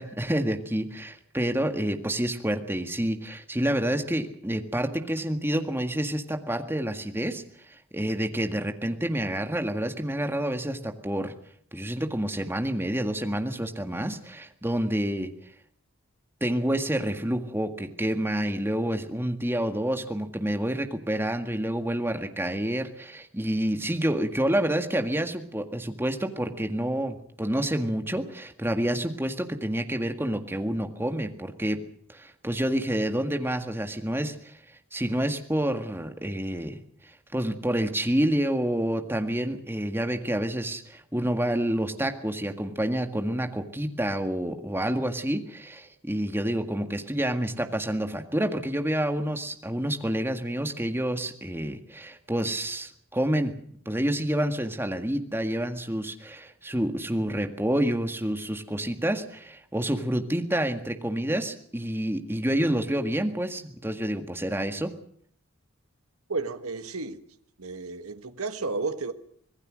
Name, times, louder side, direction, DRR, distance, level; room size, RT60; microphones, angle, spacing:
voice 1, 0.0-11.3 11.7-15.3 16.4-31.8 32.1-53.5 53.9-64.9, right 1 dB, 10° right, 1.8 m, -28 dB
voice 2, 66.3-67.2 67.6-69.1, right 3 dB, 85° right, 1.5 m, -32 dB
25.5 x 18.5 x 6.4 m
head